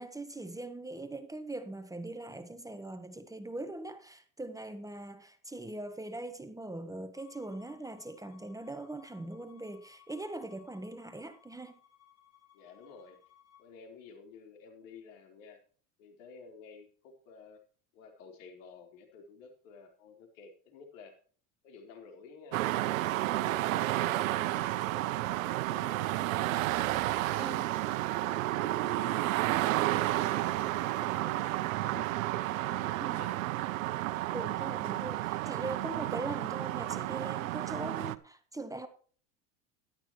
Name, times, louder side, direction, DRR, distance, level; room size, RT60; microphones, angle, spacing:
voice 1, 0.0-11.8 27.4-27.7 33.0-33.2 34.3-38.9, right 2 dB, 10° right, 1.3 m, -41 dB
Bowed string instrument, 7.1-13.7, left 11 dB, 40° left, 5.4 m, -62 dB
voice 2, 12.5-13.2 13.6-15.6 16.0-17.6 17.9-21.1 21.6-22.7 23.3-26.5 26.9-27.7 28.1-33.3, left 5 dB, 75° left, 4.3 m, -52 dB
sound 1, 22.5-38.2, right 16 dB, 85° right, 0.9 m, -31 dB
sound 2, 25.1-36.2, right 12 dB, 55° right, 2.7 m, -52 dB
13.5 x 12.0 x 3.1 m
supercardioid pair, 100°, 39 cm